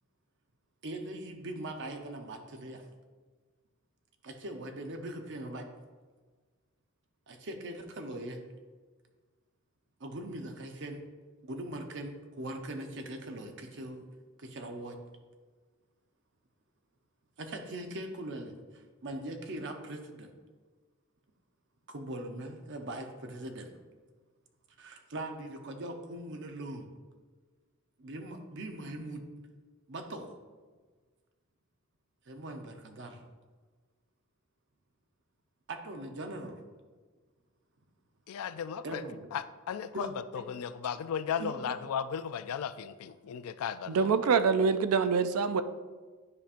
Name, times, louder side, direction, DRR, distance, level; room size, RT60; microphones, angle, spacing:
voice 1, 0.8-2.8 4.2-5.7 7.3-8.4 10.0-11.0 11.4-14.0 14.4-15.0 17.4-20.3 21.9-23.7 24.8-26.9 28.0-29.2 29.9-30.3 32.3-33.2 35.7-36.6 38.8-39.3 39.9-40.1 40.3-40.5 41.4-41.8, right 1 dB, 55° right, 5 dB, 0.8 m, -41 dB
voice 2, 38.3-39.0 39.3-40.1 40.5-44.1, left 7 dB, 75° left, 14 dB, 0.3 m, -35 dB
voice 3, 43.9-45.6, right 5 dB, 75° right, 11 dB, 0.4 m, -25 dB
9.8 x 5.2 x 2.5 m, 1.4 s
head